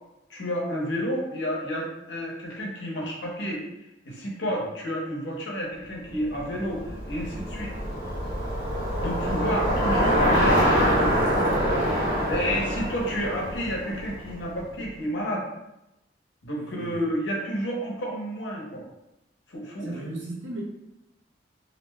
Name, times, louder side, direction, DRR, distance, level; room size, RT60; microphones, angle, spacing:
voice 1, 0.3-3.6 4.0-7.7 9.0-11.7 12.3-15.5 16.4-18.8 19.5-19.9, equal, 80° left, -3 dB, 0.8 m, -30 dB
Bicycle, 6.2-14.6, equal, 50° right, 1.2 m, -25 dB
voice 2, 16.5-17.0 19.8-20.6, right 1 dB, 80° right, -4 dB, 0.7 m, -37 dB
2.6 x 2.1 x 3.3 m, 0.91 s
head